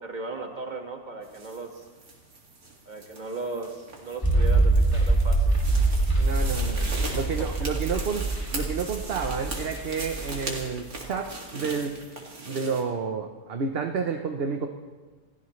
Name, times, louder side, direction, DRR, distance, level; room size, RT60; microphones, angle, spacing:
voice 1, 0.0-1.8 2.9-5.5 7.4-7.5, right 3 dB, 30° right, 3 dB, 1.8 m, -36 dB
sound 1, 1.2-12.8, right 2 dB, 70° right, 2.7 m, -40 dB
sound 2, 4.2-10.7 11.0-11.1, right 2 dB, 15° left, 2.6 m, -24 dB
voice 2, 6.2-8.2 8.5-12.0 12.4-14.7, right 5 dB, 45° right, 4 dB, 1.0 m, -30 dB
28.5 x 15.0 x 3.2 m, 1.3 s
omnidirectional pair, 1.6 m